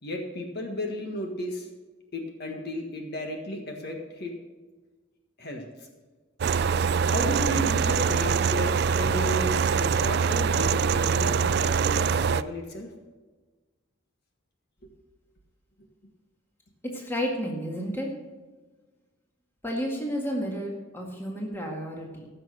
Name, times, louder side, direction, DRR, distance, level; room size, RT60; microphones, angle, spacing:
voice 1, 0.0-1.7 2.1-4.3 5.4-5.6 7.0-12.9, left 1 dB, 50° left, 2 dB, 1.6 m, -34 dB
sound 1, 6.4-12.4, right 6 dB, 50° right, 0.3 m, -24 dB
voice 2, 16.9-18.1 19.6-22.3, equal, 10° left, -1 dB, 1.8 m, -31 dB
15.0 x 6.4 x 6.6 m, 1.3 s
head